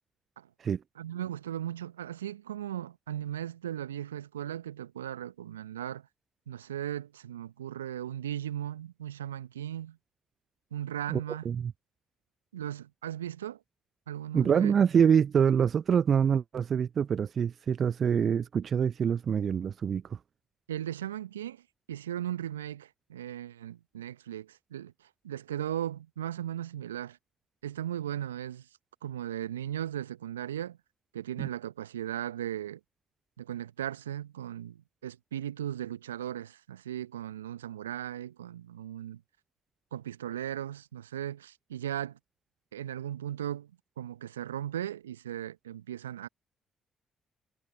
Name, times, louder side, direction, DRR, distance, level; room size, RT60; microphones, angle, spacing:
voice 1, 1.0-6.1 6.5-10.0 10.7-11.5 12.5-13.6 14.1-14.7 20.7-21.6 21.9-27.2 27.6-28.7 29.0-30.8 31.1-32.8 33.4-39.2 39.9-42.2 42.7-43.7 44.0-46.3, right 11 dB, 85° right, 0.9 m, -37 dB
voice 2, 11.1-11.7 14.3-20.0 31.4-31.5, right 7 dB, 50° right, 0.6 m, -25 dB
figure-of-eight pair, 40°, 0 cm